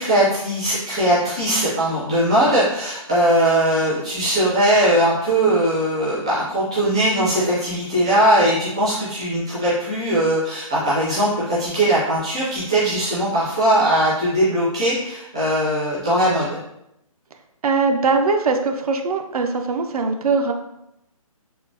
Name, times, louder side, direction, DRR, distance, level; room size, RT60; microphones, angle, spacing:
voice 1, 0.0-16.6, right 1 dB, 10° right, -10 dB, 0.3 m, -20 dB
voice 2, 17.6-20.5, right 4 dB, 85° right, 5 dB, 0.5 m, -21 dB
3.6 x 2.0 x 2.5 m, 0.83 s
hypercardioid pair, 175°, 18 cm